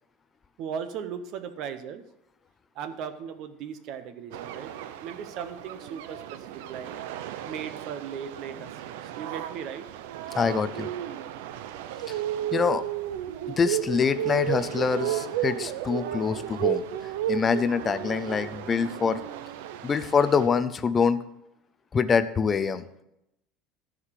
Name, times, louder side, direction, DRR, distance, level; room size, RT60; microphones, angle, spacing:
voice 1, 0.6-2.0 2.7-4.7 5.0-6.9 7.4-9.9, right 7 dB, 40° right, 10 dB, 0.8 m, -37 dB
sound 1, 4.3-20.5, right 11 dB, 75° right, 0.7 m, -33 dB
voice 2, 10.3-10.9 12.1-12.2 12.5-12.8 13.6-16.8 17.3-19.2 19.8-21.2 21.9-22.9, left 5 dB, 15° left, 12 dB, 0.5 m, -25 dB
13.5 x 4.9 x 7.5 m, 0.85 s
cardioid pair, 180°, 0 cm